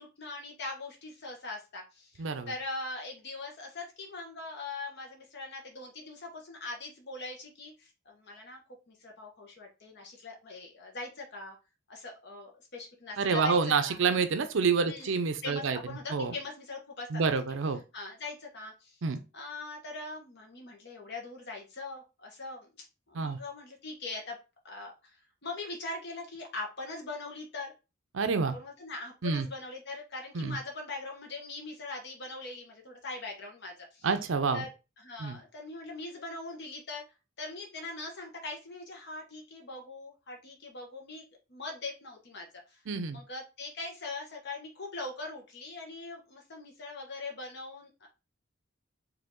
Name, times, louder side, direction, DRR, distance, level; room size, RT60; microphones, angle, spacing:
voice 1, 0.0-8.6 8.9-11.6 11.9-14.0 14.8-15.2 15.4-17.3 17.9-19.0 19.3-24.4 24.6-27.7 28.5-34.1 34.5-34.7 35.0-37.0 37.4-42.8 43.1-48.1, left 3 dB, 60° left, 1 dB, 1.1 m, -41 dB
voice 2, 2.2-2.5 13.2-15.8 16.1-16.3 17.1-17.8 19.0-19.2 23.1-23.4 28.1-28.5 29.2-29.5 30.3-30.6 34.0-34.6 35.2-35.4 42.9-43.2, right 5 dB, 70° right, 8 dB, 0.6 m, -28 dB
4.9 x 2.7 x 3.7 m, 0.29 s
head